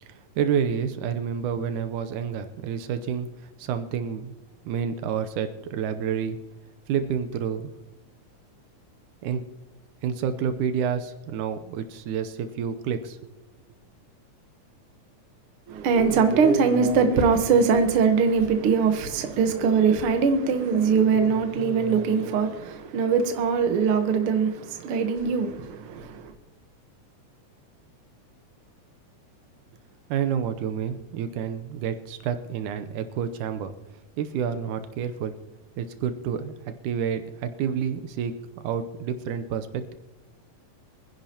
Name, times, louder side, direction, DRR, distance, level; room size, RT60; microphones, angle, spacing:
voice 1, 0.0-4.3 4.7-6.4 6.9-7.7 9.2-9.4 10.0-13.3 30.1-33.7 34.2-35.3 35.8-39.9, right 7 dB, 85° right, 2.2 m, -29 dB
voice 2, 15.7-26.3, right 5 dB, 60° right, 1.6 m, -22 dB
24.5 x 10.5 x 2.9 m
omnidirectional pair, 3.6 m